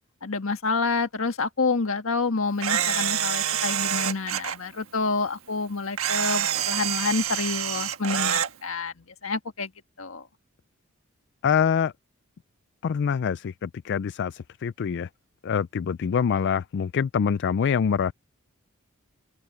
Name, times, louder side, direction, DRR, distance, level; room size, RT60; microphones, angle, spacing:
voice 1, 0.2-8.9 9.2-9.7 10.0-10.3, left 4 dB, 70° left, 1.7 m, -28 dB
Camera, 2.6-4.6 6.0-8.5, right 10 dB, 85° right, 1.4 m, -26 dB
voice 2, 11.4-11.9 12.8-15.1 15.4-18.1, left 7 dB, 55° left, 0.3 m, -25 dB
open air
head